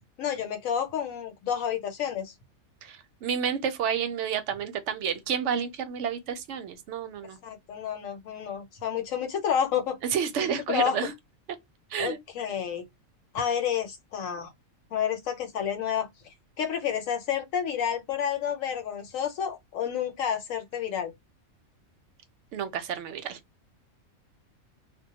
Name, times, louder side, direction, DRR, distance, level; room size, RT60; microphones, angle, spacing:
voice 1, 0.2-2.3 7.4-10.0 10.7-11.0 12.0-12.9 13.3-14.5 14.9-21.1, left 8 dB, 75° left, 1.0 m, -30 dB
voice 2, 2.8-7.4 10.1-11.1 11.9-12.2 22.5-23.4, right 7 dB, 70° right, 0.8 m, -30 dB
2.3 x 2.1 x 2.7 m
omnidirectional pair, 1.4 m